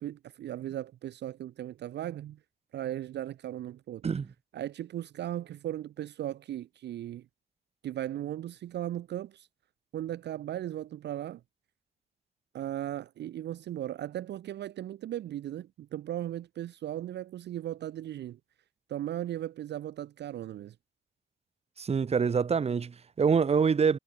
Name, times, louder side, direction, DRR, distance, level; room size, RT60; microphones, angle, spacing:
voice 1, 0.0-2.4 2.7-4.0 4.5-7.3 7.8-9.5 9.9-11.4 12.5-18.4 18.9-20.7, right 12 dB, 60° right, 0.6 m, -37 dB
voice 2, 21.8-24.0, right 6 dB, 30° right, 0.9 m, -25 dB
cardioid pair, 90°, 20 cm